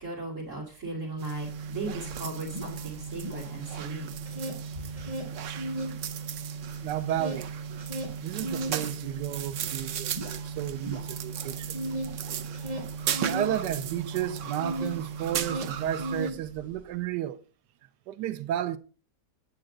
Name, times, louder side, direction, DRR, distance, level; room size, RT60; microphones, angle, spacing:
voice 1, 0.0-4.1 5.0-5.1, right 2 dB, 45° right, 2.9 m, -37 dB
sound 1, 1.2-16.3, right 7 dB, 60° right, 0.8 m, -35 dB
sound 2, 1.5-1.6 1.8-3.8 4.1-6.0 6.4-15.0 15.3-16.8, right 1 dB, 20° right, 2.2 m, -36 dB
voice 2, 6.8-7.5 8.2-11.9 13.2-17.4 18.1-18.8, right 11 dB, 90° right, 1.3 m, -32 dB
8.8 x 8.8 x 3.8 m
omnidirectional pair, 1.8 m